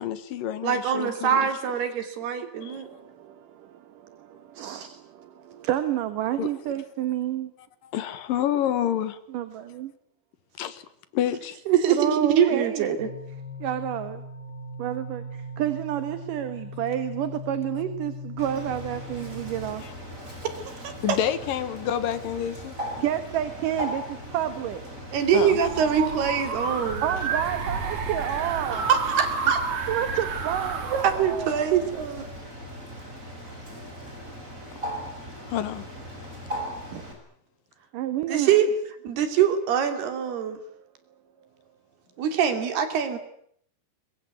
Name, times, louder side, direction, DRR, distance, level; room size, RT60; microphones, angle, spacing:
voice 1, 0.0-1.5 2.6-2.8 6.4-6.5 7.9-9.2 10.6-10.8 11.1-11.6 21.0-22.7 25.3-25.6 35.5-35.9, left 10 dB, 70° left, 2.9 m, -28 dB
voice 2, 0.6-2.9 11.7-12.1 12.4-13.1 20.8-21.2 25.1-27.0 28.9-29.6 30.9-32.3 38.3-38.7 39.0-40.6 42.2-43.2, right 8 dB, 85° right, 4.7 m, -23 dB
voice 3, 2.6-7.5 9.3-9.9 11.9-12.9 13.6-14.2 14.8-19.8 23.0-24.8 27.0-28.9 29.9-30.8 36.9-37.0 37.9-38.6 40.7-40.8, right 11 dB, 65° right, 2.7 m, -30 dB
sound 1, 13.0-19.7, left 2 dB, 40° left, 0.8 m, -39 dB
Bird, 18.4-37.1, equal, 20° right, 6.2 m, -39 dB
sound 2, 25.2-32.4, right 5 dB, 50° right, 4.0 m, -31 dB
24.0 x 21.5 x 9.4 m
omnidirectional pair, 4.5 m